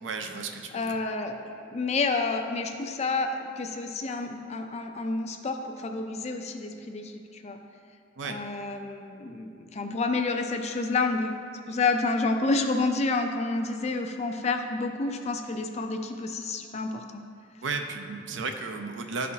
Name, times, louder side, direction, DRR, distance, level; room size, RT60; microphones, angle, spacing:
voice 1, 0.0-1.0 8.2-8.4 17.6-19.3, right 4 dB, 80° right, 5 dB, 0.6 m, -34 dB
voice 2, 0.7-7.6 8.2-11.3 11.7-17.2, left 3 dB, 35° left, 5 dB, 0.4 m, -29 dB
12.0 x 4.2 x 2.8 m, 2.4 s
head